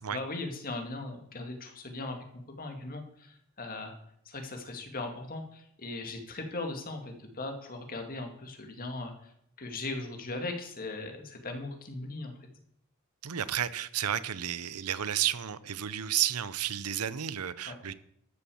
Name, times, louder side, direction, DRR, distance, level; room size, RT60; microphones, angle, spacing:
voice 1, 0.1-3.9 4.3-9.3 9.6-12.3 17.7-17.8, left 2 dB, 40° left, 4 dB, 2.3 m, -39 dB
voice 2, 13.2-17.9, right 10 dB, 85° right, 16 dB, 0.7 m, -32 dB
13.5 x 7.0 x 7.1 m, 0.69 s
head